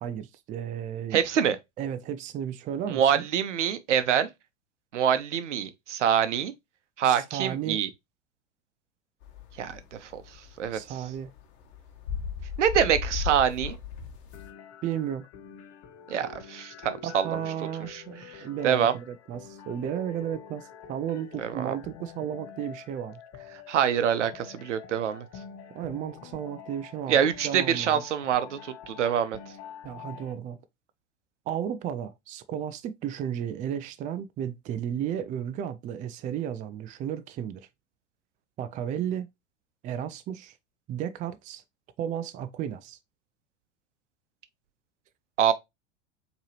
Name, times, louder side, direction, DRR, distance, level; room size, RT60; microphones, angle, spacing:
voice 1, 0.0-1.2 1.8-3.2 7.0-7.8 10.7-11.3 14.8-15.3 17.0-23.2 25.7-28.0 29.8-30.6 31.5-37.7 38.6-39.3 39.8-40.5 40.9-41.6 42.0-43.0, right 9 dB, 25° right, 0.4 m, -33 dB
voice 2, 1.1-1.6 2.9-4.3 4.9-6.5 7.0-7.9 9.6-11.0 12.6-13.8 16.1-17.4 17.9-18.9 21.4-21.8 23.7-25.3 27.1-29.4 45.4-45.5, right 8 dB, 75° right, 0.7 m, -26 dB
sound 1, 9.2-14.5, left 7 dB, 60° left, 1.1 m, -36 dB
sound 2, 14.3-30.3, left 8 dB, 40° left, 0.9 m, -47 dB
4.6 x 2.9 x 2.9 m
figure-of-eight pair, 85°, 36 cm